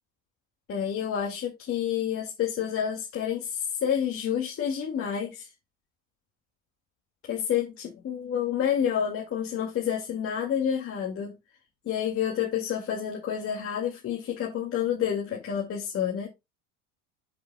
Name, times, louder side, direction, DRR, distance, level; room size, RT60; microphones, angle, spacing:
voice 1, 0.7-5.5 7.2-11.4 11.9-16.3, left 9 dB, 35° left, 2.2 m, -29 dB
12.5 x 5.8 x 2.3 m
supercardioid pair, 105°, 36 cm